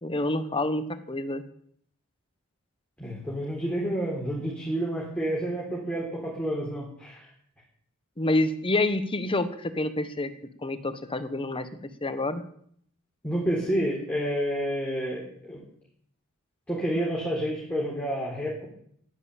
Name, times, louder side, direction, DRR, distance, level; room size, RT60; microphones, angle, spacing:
voice 1, 0.0-1.4 8.2-10.3 10.6-11.7 12.0-12.4, left 2 dB, 25° left, 11 dB, 1.1 m, -27 dB
voice 2, 3.0-7.2 13.2-15.6 16.7-18.6, equal, 5° left, -5 dB, 3.9 m, -29 dB
11.5 x 11.0 x 8.4 m, 0.66 s
head